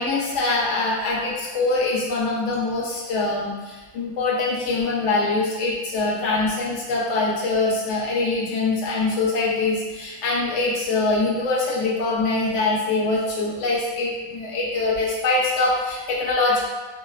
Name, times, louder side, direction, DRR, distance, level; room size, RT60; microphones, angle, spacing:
voice 1, 0.0-16.7, left 3 dB, 65° left, -5 dB, 0.8 m, -23 dB
3.1 x 2.0 x 2.3 m, 1.2 s
omnidirectional pair, 1.5 m